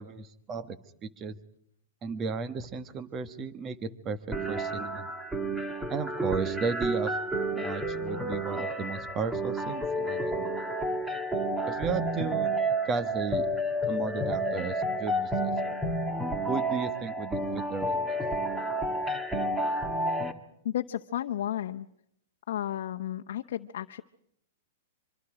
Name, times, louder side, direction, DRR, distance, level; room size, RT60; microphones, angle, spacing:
voice 1, 0.0-1.4 2.0-4.2 4.5-5.1 5.9-7.1 7.5-10.6 11.7-12.5 12.8-13.5 13.9-15.8 16.5-18.2, right 5 dB, 20° right, 13 dB, 1.4 m, -34 dB
sound 1, 4.3-20.3, right 1 dB, 5° right, 1.5 m, -30 dB
voice 2, 20.6-21.9 22.5-24.0, left 11 dB, 70° left, 4 dB, 1.0 m, -33 dB
25.5 x 25.0 x 5.0 m, 0.70 s
hypercardioid pair, 155°, 0 cm